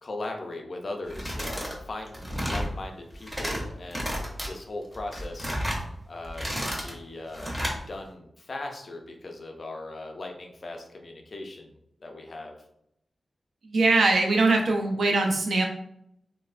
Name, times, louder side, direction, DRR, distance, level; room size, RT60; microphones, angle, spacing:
voice 1, 0.0-5.6 6.1-7.5 7.9-12.6, left 2 dB, 45° left, 3 dB, 0.4 m, -39 dB
sound 1, 1.1-1.8 2.1-2.7 3.1-3.6 3.9-4.5 4.9-5.8 6.2-6.9 7.3-7.8, equal, 10° right, 0.6 m, -31 dB
voice 2, 13.6-15.6, right 3 dB, 80° right, 1 dB, 0.5 m, -22 dB
3.0 x 2.0 x 2.4 m, 0.75 s
wide cardioid pair, 170°, 0 cm